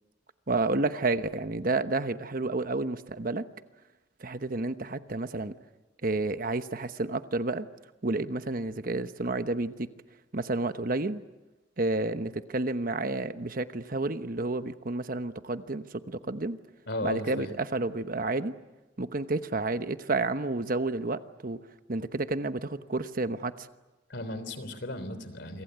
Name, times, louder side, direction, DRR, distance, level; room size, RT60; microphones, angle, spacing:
voice 1, 0.5-3.4 4.2-5.5 6.0-7.7 8.0-9.9 10.3-11.2 11.8-16.6 17.0-18.5 19.0-21.6 21.9-23.7, right 2 dB, 45° right, 10 dB, 1.1 m, -30 dB
voice 2, 16.9-17.5 24.1-25.6, left 1 dB, 60° left, 12 dB, 3.4 m, -35 dB
27.5 x 24.5 x 8.1 m, 1.1 s
head